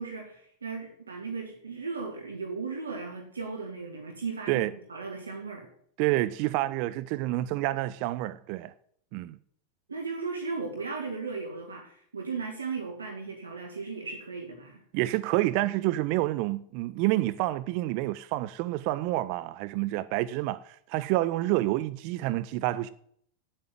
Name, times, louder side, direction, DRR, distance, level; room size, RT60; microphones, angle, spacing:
voice 1, 0.0-5.7 9.9-14.8, right 4 dB, 75° right, 1.9 m, -36 dB
voice 2, 6.0-8.7 9.1-9.4 14.9-22.9, right 17 dB, 45° right, 0.5 m, -28 dB
9.0 x 8.6 x 7.5 m
figure-of-eight pair, 90°, 0 cm